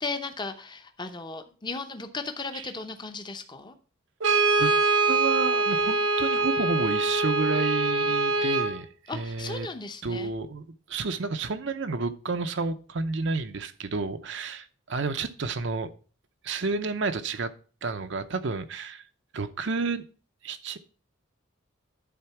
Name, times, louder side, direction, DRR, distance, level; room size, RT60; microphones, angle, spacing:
voice 1, 0.0-3.7 9.1-10.3, left 3 dB, 20° left, 0.8 m, -36 dB
Brass instrument, 4.2-8.8, right 3 dB, 75° right, 1.2 m, -24 dB
voice 2, 5.1-9.7 10.0-15.9 16.4-17.5 17.8-19.0 19.3-20.0 20.4-20.8, right 4 dB, 55° right, 0.7 m, -30 dB
11.0 x 4.0 x 5.8 m
head